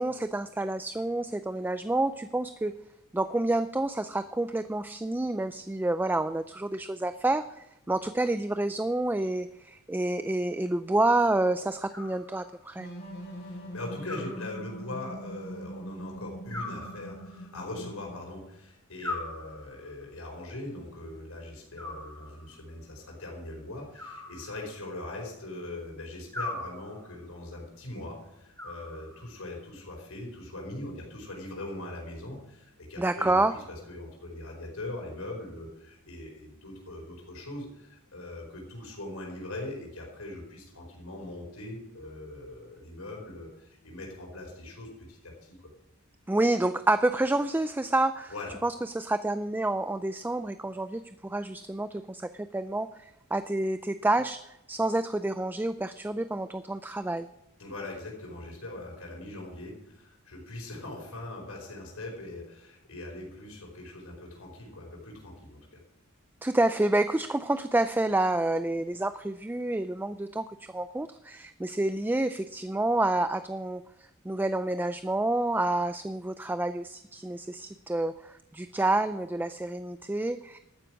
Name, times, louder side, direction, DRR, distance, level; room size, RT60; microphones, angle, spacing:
voice 1, 0.0-2.7 3.1-12.9 33.0-33.5 46.3-48.3 48.6-54.4 54.7-57.3 66.4-80.6, right 2 dB, 10° right, 11 dB, 0.4 m, -28 dB
Animal, 11.9-12.8 14.0-15.0 16.5-17.6 19.0-20.0 21.7-22.7 23.9-25.0 26.3-27.2 28.6-29.5, left 2 dB, 15° left, 3.7 m, -41 dB
sound 1, 12.8-18.4, right 1 dB, 50° left, 5.2 m, -42 dB
voice 2, 13.4-45.6 48.3-48.6 57.6-65.8, left 2 dB, 80° left, 0 dB, 4.8 m, -41 dB
13.0 x 9.3 x 6.2 m, 0.87 s
head